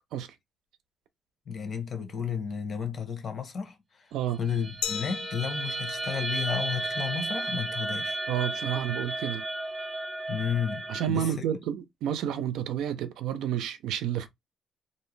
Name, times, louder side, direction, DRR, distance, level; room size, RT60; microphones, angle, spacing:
voice 1, 1.5-8.2 10.3-11.4, left 7 dB, 50° left, 0.9 m, -33 dB
sound 1, 4.5-11.1, right 2 dB, 25° right, 0.5 m, -33 dB
Glass, 4.8-7.5, left 9 dB, 80° left, 0.4 m, -39 dB
voice 2, 8.3-9.4 10.9-14.3, right 10 dB, 85° right, 0.5 m, -30 dB
2.6 x 2.1 x 3.1 m
cardioid pair, 90°, 0 cm